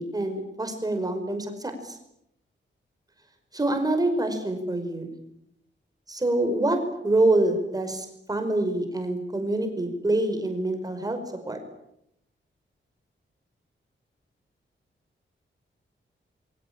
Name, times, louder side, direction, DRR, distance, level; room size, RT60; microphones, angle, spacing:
voice 1, 0.0-2.0 3.5-5.1 6.1-11.2 11.5-11.6, right 2 dB, 20° right, 6 dB, 5.3 m, -26 dB
27.0 x 24.5 x 9.0 m, 0.80 s
wide cardioid pair, 180°, 20 cm